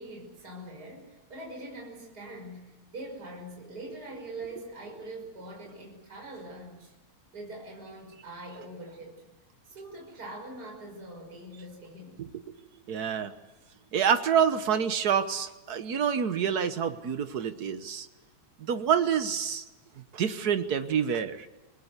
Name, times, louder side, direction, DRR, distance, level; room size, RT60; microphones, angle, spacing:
voice 1, 0.0-6.9 7.3-9.2 9.7-12.3, right 1 dB, 30° right, 0 dB, 6.5 m, -43 dB
voice 2, 12.2-12.6 12.9-13.3 13.9-18.1 18.6-19.6 20.1-21.5, right 7 dB, 80° right, 9 dB, 0.8 m, -27 dB
27.5 x 21.0 x 8.2 m, 1.1 s
omnidirectional pair, 3.3 m